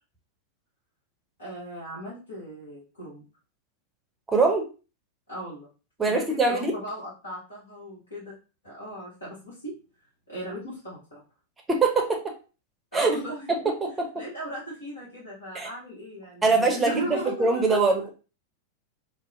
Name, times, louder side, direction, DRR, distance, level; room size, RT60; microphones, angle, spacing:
voice 1, 1.4-3.2 5.3-5.7 6.0-8.3 8.6-9.7 10.3-11.2 12.9-13.7 14.1-17.8, right 1 dB, 70° left, -8 dB, 1.1 m, -37 dB
voice 2, 4.3-4.7 6.0-6.7 11.7-12.3 12.9-13.2 13.5-14.1 15.5-15.7 16.4-18.1, right 3 dB, 15° right, 3 dB, 0.6 m, -23 dB
2.7 x 2.1 x 2.4 m, 0.33 s
figure-of-eight pair, 90°, 0 cm